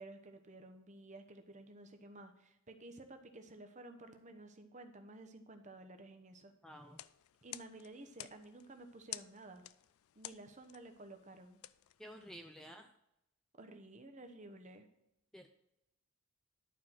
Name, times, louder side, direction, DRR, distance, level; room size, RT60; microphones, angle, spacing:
voice 1, 0.0-6.5 7.4-9.6 10.2-11.6 13.5-14.9, right 2 dB, 35° right, 7 dB, 1.0 m, -53 dB
voice 2, 6.6-7.0 12.0-12.9 15.3-15.5, equal, ahead, 4 dB, 0.5 m, -52 dB
sound 1, 6.8-12.6, left 14 dB, 75° left, 0.3 m, -53 dB
11.0 x 4.7 x 5.8 m, 0.83 s
head